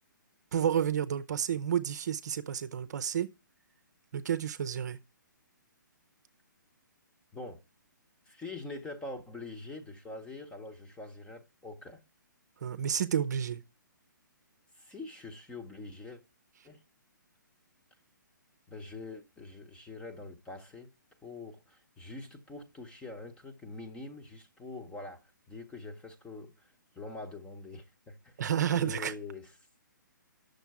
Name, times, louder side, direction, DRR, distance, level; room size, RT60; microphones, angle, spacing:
voice 1, 0.5-3.3 4.1-5.0 12.6-13.6 28.4-29.1, right 9 dB, 60° right, 0.7 m, -30 dB
voice 2, 8.2-12.0 14.8-16.2 16.6-16.8 18.7-20.9 21.2-25.2 25.5-28.4 28.7-29.5, left 2 dB, 10° left, 1.0 m, -44 dB
9.2 x 6.6 x 4.7 m
hypercardioid pair, 140°, 11 cm